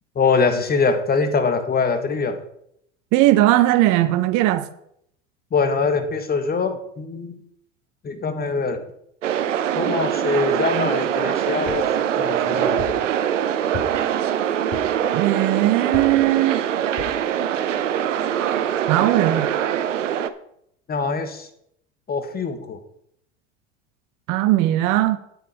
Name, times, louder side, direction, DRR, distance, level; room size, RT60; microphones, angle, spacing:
voice 1, 0.1-2.4 5.5-7.4 8.0-8.8 9.7-13.0 20.9-21.5 22.1-22.8, left 4 dB, 25° left, 1.5 m, -23 dB
voice 2, 3.1-4.7 15.1-16.7 18.9-19.5 24.3-25.2, right 15 dB, 55° right, 1.1 m, -18 dB
sound 1, 9.2-20.3, right 9 dB, 85° right, 0.8 m, -23 dB
sound 2, 11.7-12.0 12.8-13.1 13.7-14.1 14.7-15.0 15.9-16.3 17.0-17.3 17.8-17.9 18.2-18.3, left 7 dB, 50° left, 3.6 m, -35 dB
9.3 x 8.4 x 4.8 m
hypercardioid pair, 85°, 36 cm